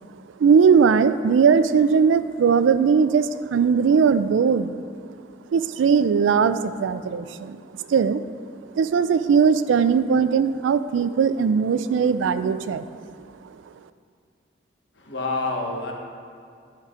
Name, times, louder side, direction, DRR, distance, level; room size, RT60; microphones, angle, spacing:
voice 1, 0.4-4.8 5.5-8.2 8.8-12.8, right 6 dB, 90° right, 12 dB, 0.3 m, -19 dB
voice 2, 14.9-15.9, left 3 dB, 75° left, 0 dB, 1.1 m, -27 dB
10.0 x 4.7 x 3.7 m, 2.3 s
head